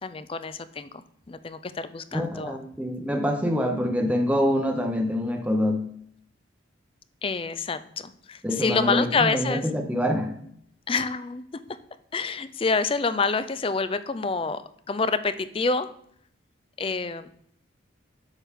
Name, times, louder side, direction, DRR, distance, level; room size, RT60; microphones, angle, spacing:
voice 1, 0.0-2.6 7.2-9.6 10.9-11.4 12.1-15.9 16.8-17.3, left 4 dB, 25° left, 13 dB, 0.4 m, -27 dB
voice 2, 2.1-5.8 8.4-10.3, equal, 5° right, 2 dB, 0.7 m, -25 dB
8.0 x 6.0 x 3.6 m, 0.68 s
head